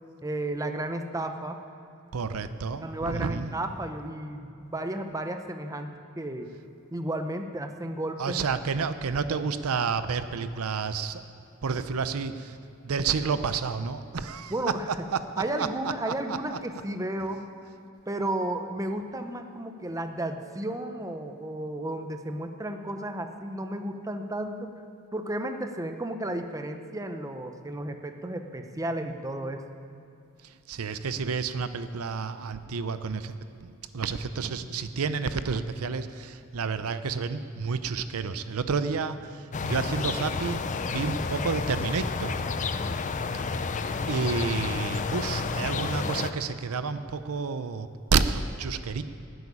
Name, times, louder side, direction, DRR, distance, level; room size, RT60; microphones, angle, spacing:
voice 1, 0.2-1.6 2.8-6.5 6.9-8.4 14.5-14.8 15.4-17.4 18.1-24.7 25.1-29.6, right 1 dB, 15° right, 6 dB, 0.7 m, -33 dB
voice 2, 2.1-3.6 8.2-11.2 11.6-12.6 12.8-14.5 15.1-15.2 15.6-15.7 16.1-16.6 30.4-33.4 33.6-42.4 43.3-43.4 44.1-49.0, right 5 dB, 75° right, 12 dB, 0.6 m, -30 dB
sound 1, 39.5-46.3, left 4 dB, 35° left, 0.5 m, -30 dB
11.5 x 8.1 x 10.0 m, 2.7 s
head